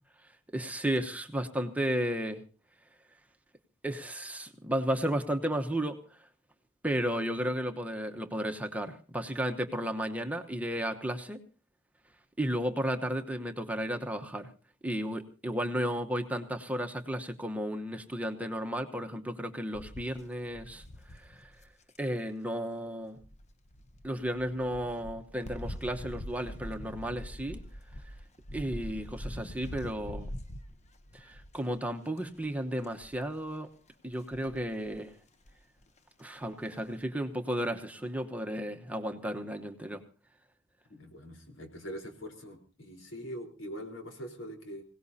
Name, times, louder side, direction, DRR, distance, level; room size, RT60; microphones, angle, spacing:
voice 1, 0.5-2.4 3.8-6.0 6.8-11.4 12.4-14.5 14.8-20.8 21.1-21.5 22.0-23.2 24.0-27.6 28.5-30.3 31.1-33.7 34.0-35.1 36.2-40.0, equal, 10° right, 4 dB, 1.0 m, -33 dB
sound 1, 19.7-22.0 23.2-31.8 32.2-32.5 32.8-33.3 34.1-35.0 35.5-35.6 35.8-35.9, equal, 35° left, 0.8 m, -44 dB
voice 2, 40.9-44.8, equal, 80° left, 4 dB, 4.0 m, -43 dB
25.5 x 17.5 x 2.8 m, 0.35 s
head